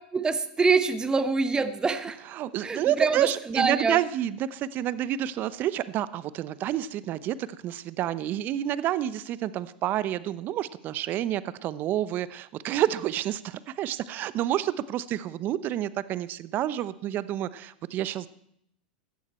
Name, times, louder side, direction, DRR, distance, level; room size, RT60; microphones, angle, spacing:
voice 1, 0.1-2.2 2.6-4.0, right 4 dB, 15° right, 11 dB, 1.2 m, -25 dB
voice 2, 2.3-18.3, right 12 dB, 40° right, 17 dB, 0.8 m, -29 dB
16.5 x 12.5 x 4.4 m, 0.73 s
hypercardioid pair, 110°, 5 cm